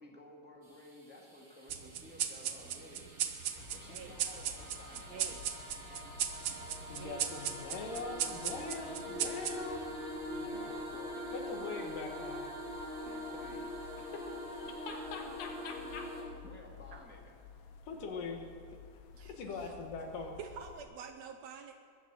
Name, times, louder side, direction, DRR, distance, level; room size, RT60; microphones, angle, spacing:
voice 1, 0.0-3.1 3.7-5.4 10.5-11.9 13.0-14.1 16.4-17.3, left 1 dB, 5° right, -1 dB, 1.2 m, -54 dB
sound 1, 0.6-16.2, left 1 dB, 25° right, 2.9 m, -44 dB
sound 2, 1.7-10.6, right 9 dB, 90° right, 1.2 m, -38 dB
sound 3, 3.6-20.8, left 7 dB, 70° left, 2.1 m, -55 dB
voice 2, 5.1-5.4 7.0-7.3 16.9-17.0 19.1-19.7 20.4-21.7, right 7 dB, 70° right, 6 dB, 1.7 m, -48 dB
voice 3, 6.9-9.9 10.3-10.9 11.3-12.4 14.5-16.1 17.9-18.4 19.3-20.4, left 4 dB, 90° left, 3 dB, 3.1 m, -42 dB
21.0 x 7.2 x 7.7 m, 2.2 s
omnidirectional pair, 3.6 m